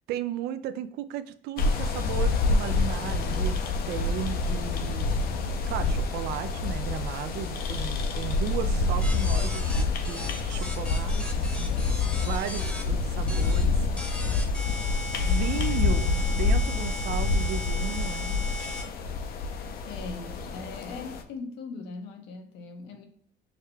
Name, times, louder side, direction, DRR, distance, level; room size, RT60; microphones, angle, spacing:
voice 1, 0.1-5.1 5.4-11.6 12.2-13.9 15.2-18.3, right 10 dB, 75° right, 12 dB, 0.4 m, -35 dB
sound 1, 1.6-21.2, left 3 dB, 65° left, 0.6 m, -27 dB
sound 2, 9.0-12.8 13.3-13.6 14.0-18.8, left 1 dB, 5° left, 0.8 m, -38 dB
voice 2, 19.9-23.1, left 4 dB, 90° left, 4 dB, 0.9 m, -40 dB
6.4 x 2.2 x 3.2 m, 0.65 s
cardioid pair, 110°, 17 cm